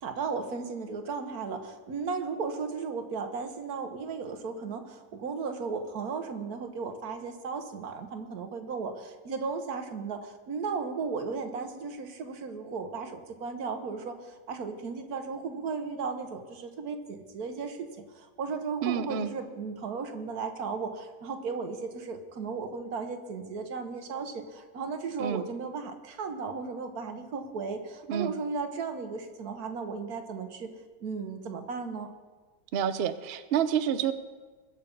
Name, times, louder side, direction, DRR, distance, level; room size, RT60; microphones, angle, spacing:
voice 1, 0.0-30.7 31.0-32.1, right 5 dB, 60° right, 7 dB, 1.5 m, -35 dB
voice 2, 18.8-19.3 25.2-25.4 28.1-28.3 32.7-34.1, right 8 dB, 80° right, 11 dB, 0.5 m, -28 dB
21.5 x 7.2 x 5.3 m, 1.4 s
omnidirectional pair, 2.0 m